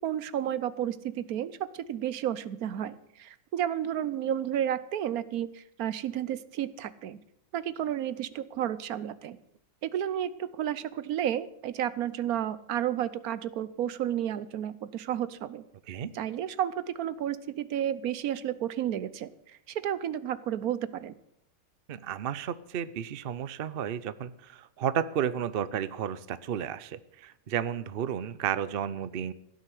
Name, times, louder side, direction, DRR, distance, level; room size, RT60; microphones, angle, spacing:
voice 1, 0.0-7.2 7.5-9.4 9.8-15.6 16.1-21.1, right 10 dB, 70° right, 16 dB, 1.2 m, -32 dB
voice 2, 21.9-29.3, right 9 dB, 55° right, 15 dB, 0.7 m, -32 dB
16.5 x 6.5 x 9.8 m, 0.75 s
omnidirectional pair, 1.7 m